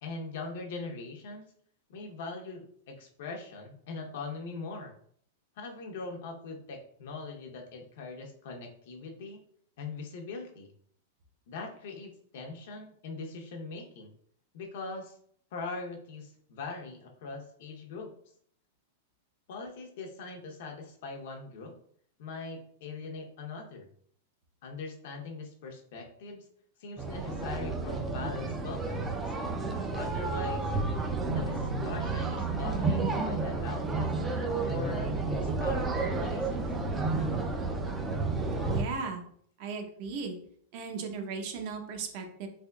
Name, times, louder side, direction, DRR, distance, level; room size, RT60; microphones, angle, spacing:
voice 1, 0.0-1.5 1.9-4.9 5.6-9.4 9.8-10.7 11.5-14.1 14.5-15.2 15.5-18.1 19.5-21.7 22.2-23.9 24.6-26.5 26.8-29.3 29.9-30.7 31.3-34.1 34.6-36.6, left 3 dB, 60° left, 2 dB, 0.8 m, -41 dB
sound 1, 27.0-38.8, right 3 dB, 15° right, 0.4 m, -31 dB
voice 2, 38.7-39.2 39.6-40.4 40.7-42.5, right 5 dB, 50° right, 3 dB, 0.7 m, -36 dB
3.5 x 3.4 x 2.3 m, 0.62 s
supercardioid pair, 155°, 0 cm